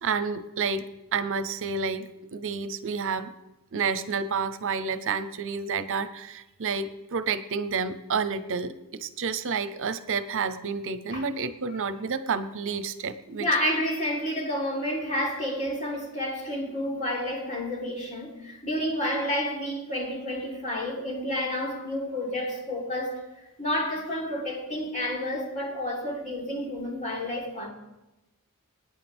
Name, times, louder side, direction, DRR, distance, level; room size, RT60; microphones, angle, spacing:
voice 1, 0.0-3.3 3.7-13.5, right 5 dB, 60° right, 0.7 m, -30 dB
voice 2, 13.4-23.2 23.6-27.7, left 1 dB, 35° left, 3.6 m, -30 dB
26.5 x 9.3 x 3.5 m
head